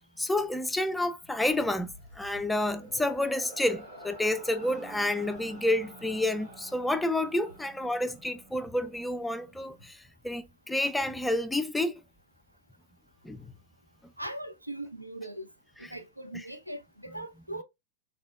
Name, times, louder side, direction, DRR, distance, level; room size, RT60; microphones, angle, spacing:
voice 1, 0.2-12.0 13.2-13.5, left 1 dB, 5° left, 0.4 m, -29 dB
sound 1, 1.4-8.8, right 1 dB, 70° right, 1.1 m, -50 dB
sound 2, 4.6-9.9, right 3 dB, 15° right, 1.5 m, -54 dB
voice 2, 14.2-15.5 15.8-17.6, right 1 dB, 85° right, 0.4 m, -40 dB
3.6 x 3.4 x 2.3 m
figure-of-eight pair, 90°, 0 cm